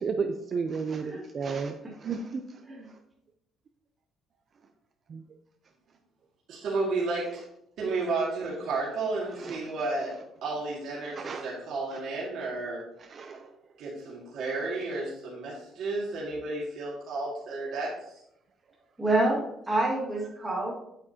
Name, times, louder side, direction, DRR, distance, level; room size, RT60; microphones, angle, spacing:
voice 1, 0.0-1.7 2.0-2.4 5.1-5.2 9.4-9.6 11.2-11.4 13.1-13.5, right 5 dB, 30° right, 6 dB, 0.5 m, -32 dB
voice 2, 6.5-7.3 7.8-10.1 10.4-12.8 13.8-18.2, right 3 dB, 55° right, -6 dB, 2.1 m, -32 dB
voice 3, 19.0-20.7, right 2 dB, 10° right, -4 dB, 1.9 m, -27 dB
8.8 x 8.5 x 2.8 m, 0.79 s
cardioid pair, 180°, 0 cm